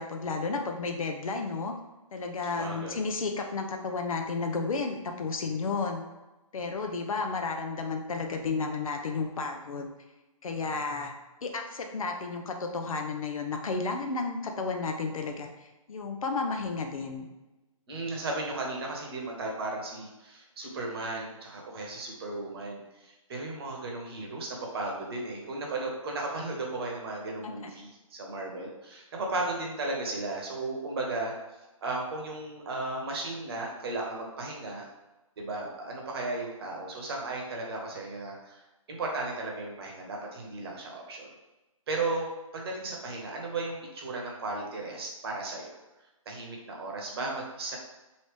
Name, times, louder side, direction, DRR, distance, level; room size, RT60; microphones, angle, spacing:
voice 1, 0.0-1.7 2.1-6.0 6.5-9.9 10.4-11.1 11.4-17.3 27.4-27.7, left 4 dB, 75° left, 4 dB, 0.7 m, -32 dB
voice 2, 2.6-3.0 17.9-31.3 31.8-34.9 35.4-38.6 38.9-41.3 41.9-42.3 42.5-45.7 46.3-47.8, right 2 dB, 45° right, -1 dB, 0.9 m, -35 dB
3.1 x 2.7 x 3.2 m, 1.1 s
hypercardioid pair, 150°, 18 cm